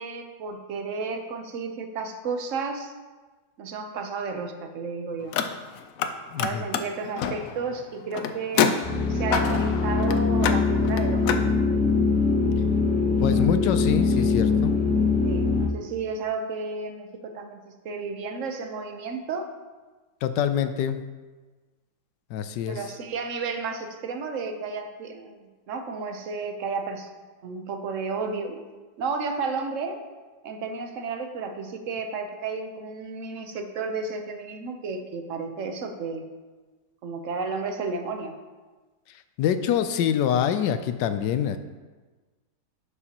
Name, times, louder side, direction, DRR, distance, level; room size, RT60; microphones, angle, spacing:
voice 1, 0.0-2.9 3.6-5.3 6.4-8.8 9.1-11.4 13.2-14.3 15.2-19.5 22.7-27.1 27.4-28.6 29.0-30.0 30.4-36.2 37.0-38.3, right 4 dB, 55° right, 5 dB, 1.0 m, -32 dB
Car, 5.2-6.1 6.4-11.5, left 7 dB, 70° left, 0.8 m, -28 dB
voice 2, 6.3-6.7 13.2-14.8 20.2-21.0 22.3-22.8 39.4-41.6, left 9 dB, 85° left, 10 dB, 1.2 m, -25 dB
sound 1, 8.8-15.7, left 4 dB, 10° right, 0.3 m, -23 dB
11.0 x 6.8 x 2.9 m, 1.3 s
omnidirectional pair, 1.8 m